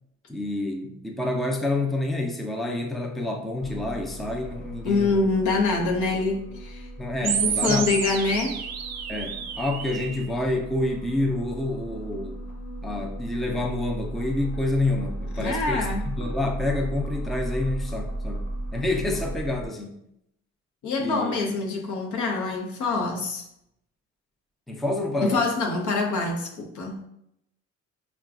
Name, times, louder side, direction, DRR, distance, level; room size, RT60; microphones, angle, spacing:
voice 1, 0.3-5.2 7.0-7.9 9.1-12.4 12.8-20.0 21.0-21.3 24.7-25.5, left 2 dB, ahead, 2 dB, 0.4 m, -28 dB
sound 1, 3.6-19.7, right 1 dB, 25° left, 0.9 m, -35 dB
voice 2, 4.8-6.9 7.2-8.6 15.3-16.0 20.8-23.4 25.2-27.0, left 3 dB, 75° left, 1 dB, 0.8 m, -25 dB
sound 2, 7.2-10.2, right 8 dB, 60° right, 0.4 m, -30 dB
4.8 x 2.3 x 2.4 m, 0.78 s
cardioid pair, 90°, 30 cm